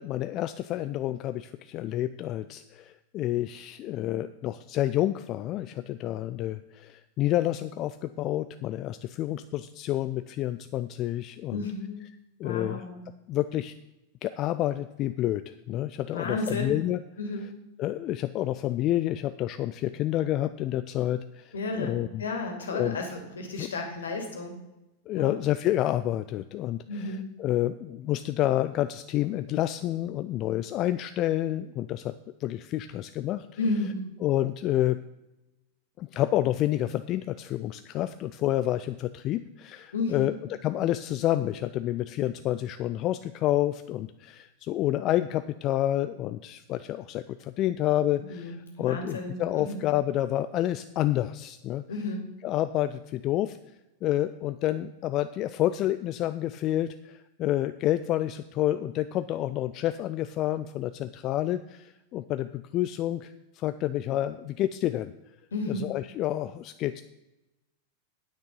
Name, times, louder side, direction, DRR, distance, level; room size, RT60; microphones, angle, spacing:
voice 1, 0.0-11.6 12.4-12.8 13.3-13.7 14.2-15.4 15.7-17.0 17.8-22.2 22.7-23.0 23.6-23.7 25.1-32.1 32.4-33.5 34.2-35.0 36.0-40.3 40.6-51.8 52.4-53.6 54.0-65.1 65.7-67.0, left 13 dB, 35° left, 12 dB, 0.4 m, -29 dB
voice 2, 11.5-12.0 12.4-13.0 16.1-16.8 17.2-17.5 21.5-24.5 25.2-25.3 26.9-27.2 33.6-34.1 39.9-40.3 48.3-49.8 51.9-52.2 65.5-65.9, left 2 dB, 70° left, 4 dB, 2.4 m, -32 dB
9.4 x 9.0 x 5.4 m, 0.97 s
figure-of-eight pair, 90°, 0 cm